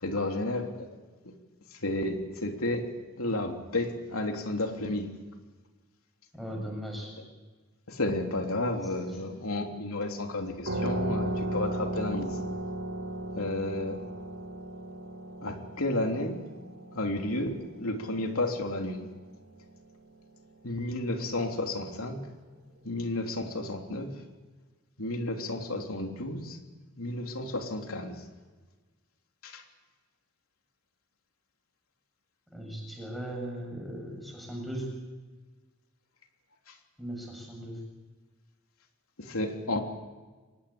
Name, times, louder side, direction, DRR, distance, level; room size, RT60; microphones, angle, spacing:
voice 1, 0.0-1.0 1.2-1.3 1.8-2.9 3.2-5.1 7.9-12.4 13.3-14.0 15.4-16.4 16.9-19.1 20.6-22.3 22.8-24.2 25.0-26.6 27.0-28.2 29.4-29.6 39.2-39.8, left 2 dB, 80° left, 3 dB, 3.4 m, -32 dB
voice 2, 6.3-7.1 8.8-9.2 32.5-34.9 37.0-37.8, right 1 dB, ahead, 0 dB, 7.4 m, -38 dB
sound 1, 10.7-19.9, right 1 dB, 70° right, 5.3 m, -36 dB
24.5 x 20.5 x 8.7 m, 1.3 s
head